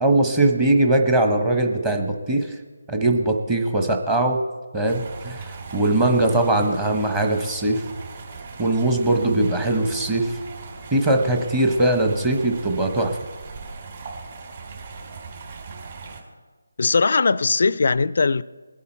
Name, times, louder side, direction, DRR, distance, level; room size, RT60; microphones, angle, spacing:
voice 1, 0.0-2.5 2.9-4.4 4.7-7.8 8.6-10.4 10.9-13.2, right 2 dB, 15° right, 0.9 m, -21 dB
sound 1, 4.8-16.2, right 4 dB, 40° right, 2.6 m, -39 dB
voice 2, 16.8-18.4, left 4 dB, 50° left, 0.4 m, -19 dB
20.5 x 8.5 x 4.4 m
figure-of-eight pair, 170°, 0 cm